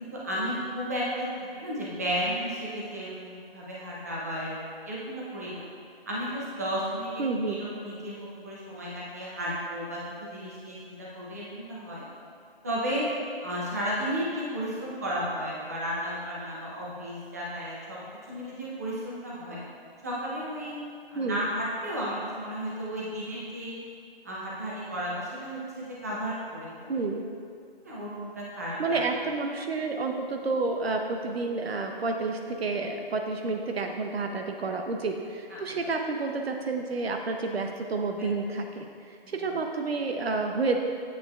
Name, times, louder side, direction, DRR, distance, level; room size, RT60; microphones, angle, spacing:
voice 1, 0.0-4.6 4.8-5.6 6.1-12.0 12.6-13.1 13.4-18.0 18.3-19.6 20.0-20.8 21.1-23.8 24.2-27.0 27.8-29.0 35.5-35.8 38.2-38.3 39.2-39.4, equal, 15° right, -6 dB, 0.6 m, -33 dB
voice 2, 7.2-7.6 21.2-21.4 26.9-27.2 28.8-40.8, right 3 dB, 80° right, 4 dB, 0.7 m, -30 dB
8.5 x 7.6 x 2.3 m, 2.3 s
hypercardioid pair, 165°, 30 cm